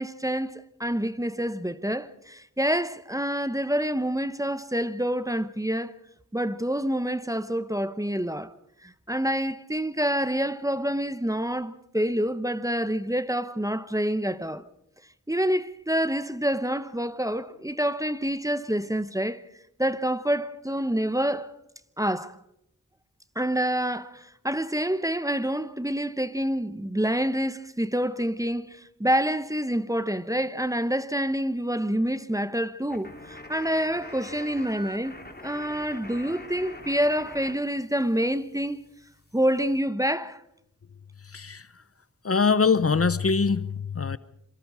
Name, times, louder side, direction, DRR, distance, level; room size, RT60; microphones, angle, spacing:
voice 1, 0.0-5.9 6.3-8.5 8.8-14.6 15.3-19.4 19.8-21.5 22.0-22.4 23.4-35.2 35.4-38.8 39.3-40.4, equal, 10° right, 0.9 m, -27 dB
sound 1, 32.9-37.5 37.8-39.8, left 1 dB, 30° left, 3.2 m, -44 dB
voice 2, 41.3-41.7 42.2-44.2, left 5 dB, 45° left, 0.8 m, -23 dB
26.0 x 24.5 x 4.9 m
wide cardioid pair, 65°, 32 cm